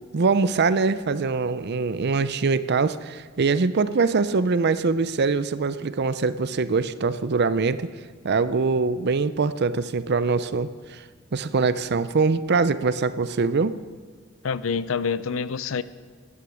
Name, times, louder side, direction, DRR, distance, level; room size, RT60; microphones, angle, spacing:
voice 1, 0.1-7.9 8.2-11.0 11.3-13.7, right 4 dB, 55° right, 14 dB, 0.6 m, -23 dB
voice 2, 14.4-15.8, left 5 dB, 75° left, 15 dB, 0.5 m, -26 dB
15.5 x 9.9 x 6.3 m, 1.5 s
head